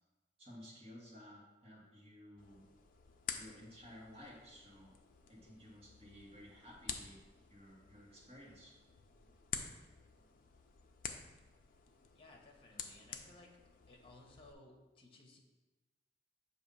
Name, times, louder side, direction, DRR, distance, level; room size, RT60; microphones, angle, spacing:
voice 1, 0.4-2.7 3.3-5.0 5.3-7.2 7.5-8.7, equal, 35° right, -5 dB, 1.7 m, -55 dB
sound 1, 2.4-14.5, left 7 dB, 50° left, 0.5 m, -50 dB
voice 2, 12.1-13.5 13.9-15.4, left 2 dB, 30° left, 0 dB, 1.0 m, -59 dB
6.9 x 2.7 x 5.4 m, 1.2 s
head